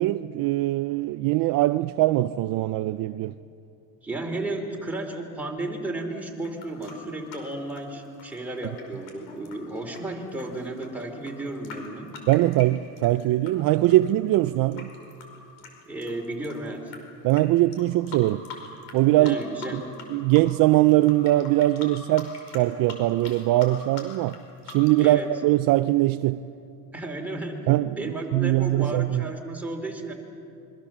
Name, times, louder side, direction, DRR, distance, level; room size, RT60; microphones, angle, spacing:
voice 1, 0.0-3.3 12.3-14.9 17.2-18.4 18.9-19.4 19.7-19.8 20.1-24.4 24.7-26.4 27.7-29.3, right 16 dB, 50° right, 0.6 m, -22 dB
voice 2, 4.0-12.1 15.9-16.9 19.2-19.9 25.0-25.3 26.9-27.7 28.0-30.1, right 2 dB, 5° right, 3.2 m, -33 dB
sound 1, 6.4-13.5 13.8-17.0 17.3-17.4 17.7-19.0 19.2-20.1 20.3-25.2, left 6 dB, 75° left, 5.4 m, -43 dB
27.0 x 23.5 x 7.4 m
cardioid pair, 150°, 44 cm